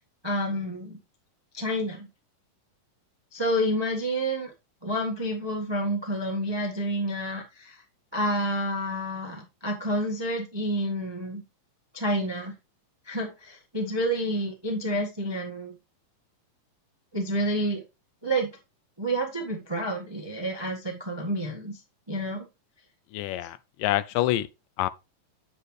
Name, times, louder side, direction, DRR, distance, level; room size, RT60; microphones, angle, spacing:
voice 1, 0.2-1.0 1.5-2.1 3.3-4.5 4.8-7.8 8.1-11.4 11.9-12.5 13.0-15.7 17.1-17.8 18.2-18.5 19.0-21.8 22.1-22.4, equal, 40° right, 0.3 m, -29 dB
voice 2, 23.1-24.5 24.8-24.9, left 14 dB, 85° left, 2.1 m, -26 dB
8.3 x 7.2 x 3.2 m
omnidirectional pair, 3.9 m